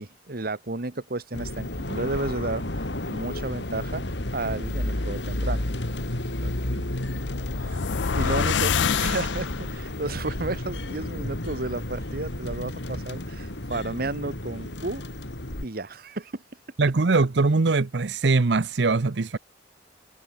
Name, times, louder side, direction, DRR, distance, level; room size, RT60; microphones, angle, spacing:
voice 1, 0.0-4.0 4.3-5.6 7.5-7.9 8.1-15.0 15.6-16.4, right 2 dB, 55° right, 1.4 m, -32 dB
sound 1, 1.3-15.7, left 1 dB, 70° left, 2.7 m, -32 dB
voice 2, 6.4-6.8 16.8-19.4, right 3 dB, 70° right, 0.7 m, -22 dB
sound 2, 7.0-9.9, left 6 dB, 85° left, 0.6 m, -26 dB
head